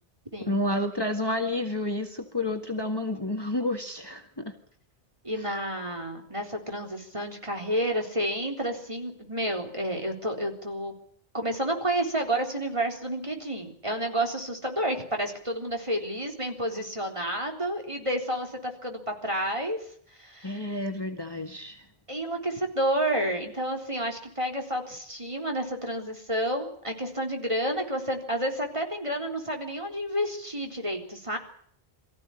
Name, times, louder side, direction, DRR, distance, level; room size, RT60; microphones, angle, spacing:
voice 1, 0.5-4.5 20.4-21.8, left 1 dB, 25° left, 5 dB, 1.9 m, -30 dB
voice 2, 5.2-10.9 11.3-19.8 20.2-20.7 22.1-31.4, right 1 dB, 30° right, 2 dB, 3.9 m, -30 dB
23.5 x 15.0 x 9.9 m, 0.63 s
omnidirectional pair, 1.1 m